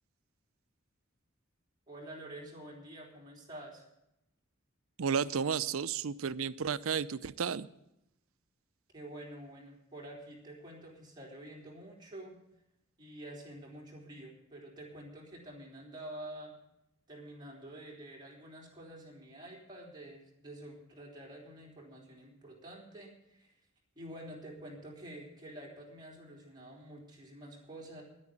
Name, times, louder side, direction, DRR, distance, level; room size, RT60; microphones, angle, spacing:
voice 1, 1.9-3.8 8.9-12.4 13.0-16.5 17.1-23.5 24.0-28.0, right 1 dB, 20° right, -2 dB, 3.7 m, -48 dB
voice 2, 5.0-7.7, right 6 dB, 85° right, 16 dB, 0.5 m, -32 dB
11.0 x 9.7 x 8.8 m, 0.84 s
head